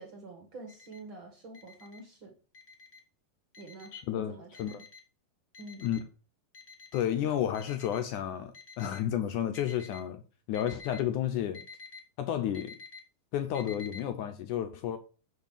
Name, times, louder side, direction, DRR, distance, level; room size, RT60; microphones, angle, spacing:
voice 1, 0.0-2.4 3.6-4.8 5.6-5.9, right 2 dB, 45° right, 1.9 m, -47 dB
Alarm, 0.7-1.0 1.5-2.0 2.5-3.0 3.5-4.0 4.5-5.0 5.5-6.0 6.5-7.0 7.5-8.0 8.5-9.0 9.5-10.0 10.5-11.0 11.5-12.0 12.5-13.0 13.5-14.0, left 4 dB, 45° left, 0.8 m, -49 dB
voice 2, 3.9-4.3 4.6-4.7 5.8-6.0 6.9-8.5 8.8-10.2 10.5-11.6 12.2-12.8 13.3-15.0, left 10 dB, 70° left, 2.1 m, -31 dB
6.9 x 6.6 x 7.3 m
omnidirectional pair, 4.1 m